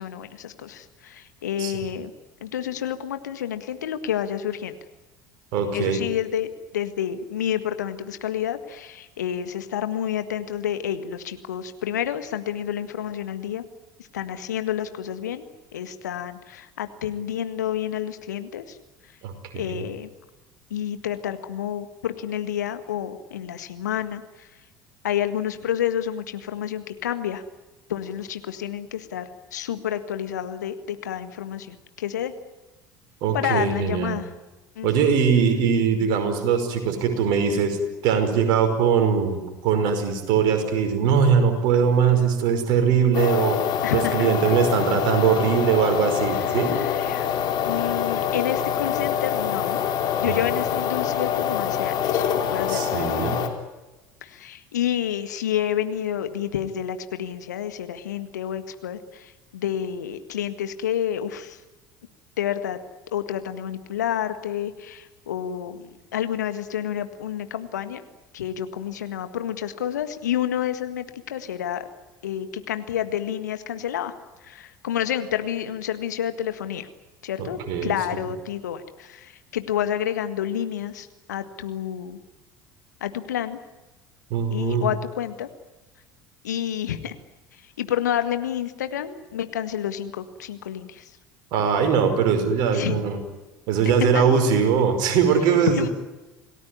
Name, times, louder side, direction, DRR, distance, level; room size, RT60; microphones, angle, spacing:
voice 1, 0.0-2.1 2.4-4.7 5.7-6.5 6.7-13.6 14.1-18.8 19.5-20.1 20.7-24.5 25.0-27.4 27.9-32.3 33.3-34.3 34.7-35.1 43.8-44.5 46.3-47.4 47.6-49.8 50.2-53.1 54.2-61.6 62.4-62.8 63.1-68.0 68.3-71.9 72.2-74.1 74.4-76.9 77.2-82.2 83.0-83.6 84.5-85.5 86.4-87.1 87.8-91.1 92.7-93.0 93.8-94.2 95.7-95.9, left 10 dB, 75° left, 10 dB, 1.7 m, -29 dB
voice 2, 5.5-6.0 19.2-19.8 33.2-34.2 34.8-37.8 38.0-43.6 43.9-46.8 50.3-50.4 52.7-53.4 77.4-77.9 84.3-84.9 91.5-93.2 93.7-95.9, right 6 dB, 55° right, 7 dB, 5.4 m, -21 dB
sound 1, 43.1-53.5, left 8 dB, 50° left, 3.5 m, -25 dB
28.0 x 18.5 x 9.8 m, 1.1 s
figure-of-eight pair, 65°, 10 cm